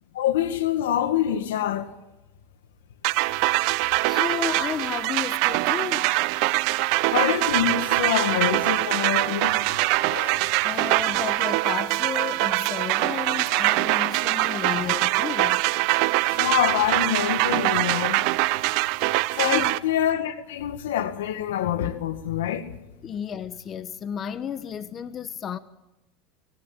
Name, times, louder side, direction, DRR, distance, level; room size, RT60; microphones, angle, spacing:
voice 1, 0.1-1.9 7.1-9.6 10.1-10.4 14.5-14.9 15.4-15.5 16.3-18.3 19.3-22.7, left 11 dB, 90° left, 1.9 m, -26 dB
sound 1, 3.0-19.8, right 20 dB, 65° right, 0.8 m, -23 dB
voice 2, 4.0-6.1 10.6-15.6 19.4-19.8 23.0-25.6, left 8 dB, 35° left, 1.0 m, -33 dB
24.0 x 17.0 x 8.9 m
supercardioid pair, 120°, 0 cm